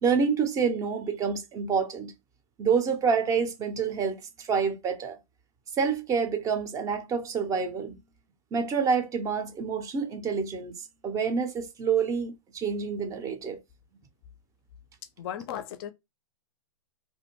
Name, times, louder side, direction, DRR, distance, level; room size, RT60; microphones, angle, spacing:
voice 1, 0.0-2.1 2.6-5.2 5.8-8.0 8.5-10.7 11.0-13.6, right 6 dB, 20° right, 0.5 m, -27 dB
voice 2, 15.2-15.9, left 10 dB, 45° left, 0.4 m, -35 dB
2.4 x 2.1 x 2.9 m
hypercardioid pair, 130°, 18 cm